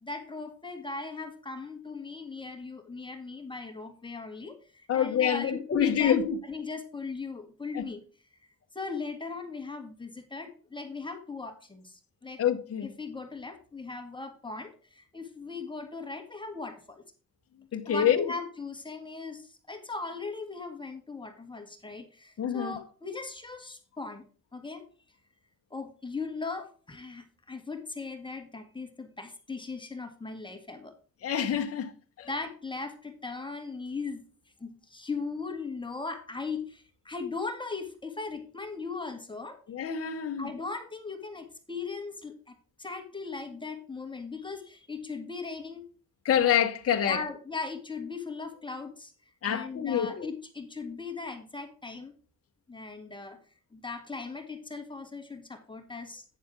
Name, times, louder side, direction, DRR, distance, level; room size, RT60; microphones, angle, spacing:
voice 1, 0.0-6.2 6.4-8.0 8.7-12.4 12.8-17.0 17.8-24.2 24.5-24.8 25.7-30.9 32.3-34.2 34.6-39.6 40.4-45.9 47.0-49.1 49.5-52.1 52.7-53.4 53.7-56.2, left 4 dB, 15° left, 2.1 m, -38 dB
voice 2, 4.9-6.4 7.7-7.8 12.4-12.9 17.7-18.3 22.4-22.7 31.2-31.9 32.2-32.3 39.7-40.5 46.2-47.2 49.4-50.3, left 9 dB, 50° left, 1.4 m, -26 dB
9.5 x 7.0 x 3.8 m
cardioid pair, 90°, 30 cm